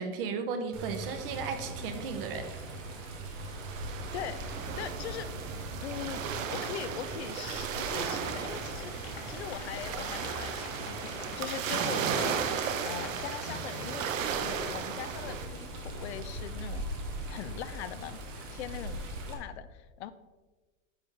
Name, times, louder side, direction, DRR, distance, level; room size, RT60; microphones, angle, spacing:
voice 1, 0.0-2.5, right 5 dB, 45° right, 7 dB, 1.0 m, -35 dB
Water, 0.7-19.3, right 1 dB, 15° right, 0.4 m, -41 dB
sound 1, 3.5-15.5, right 7 dB, 85° right, 1.1 m, -35 dB
voice 2, 4.1-5.3 5.8-12.6 12.8-18.2 18.5-20.1, left 10 dB, 60° left, 13 dB, 0.5 m, -41 dB
Applause, 7.4-15.0, left 6 dB, 35° left, 1.2 m, -50 dB
9.8 x 6.8 x 3.4 m, 1.3 s
supercardioid pair, 175°, 38 cm